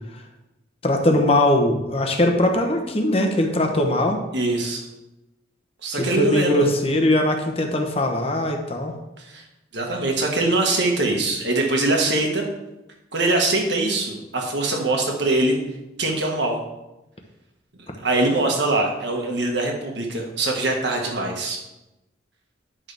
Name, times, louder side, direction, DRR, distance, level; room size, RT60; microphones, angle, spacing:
voice 1, 0.8-4.2 5.9-8.9, left 1 dB, 30° left, 3 dB, 1.0 m, -20 dB
voice 2, 4.3-4.9 5.8-6.7 9.2-9.4 9.7-12.5 13.1-15.6 16.0-16.6 18.0-21.6, right 2 dB, 65° right, 1 dB, 1.6 m, -23 dB
10.5 x 6.2 x 3.4 m, 0.96 s
head